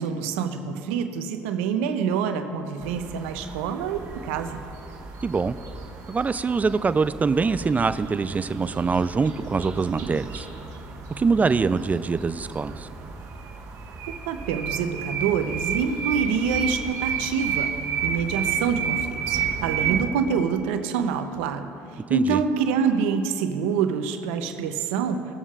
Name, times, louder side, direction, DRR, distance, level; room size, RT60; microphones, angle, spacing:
voice 1, 0.0-4.6 14.3-17.7 18.0-25.4, right 6 dB, 85° right, 8 dB, 0.7 m, -26 dB
sound 1, 2.8-20.1, right 6 dB, 60° right, 1.4 m, -32 dB
voice 2, 5.2-5.5 6.1-10.5 11.2-12.9 22.1-22.4, right 4 dB, 25° right, 13 dB, 0.4 m, -24 dB
19.0 x 7.2 x 2.4 m, 2.8 s
supercardioid pair, 75°, 6 cm